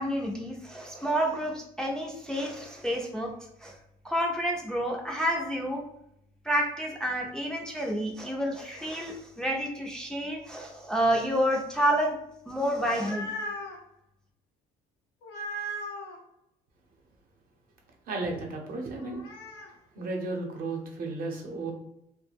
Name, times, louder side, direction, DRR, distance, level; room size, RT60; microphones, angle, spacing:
voice 1, 0.0-3.3 3.6-3.7 4.0-5.8 6.4-12.2 12.5-13.3, equal, 5° left, 0 dB, 0.4 m, -29 dB
sound 1, 12.7-13.8 15.2-16.2 19.0-19.7, equal, 85° left, 0.5 m, -37 dB
voice 2, 18.1-19.2 19.9-21.7, right 3 dB, 60° right, 1 dB, 0.7 m, -34 dB
2.3 x 2.1 x 3.3 m, 0.77 s
cardioid pair, 110°, 17 cm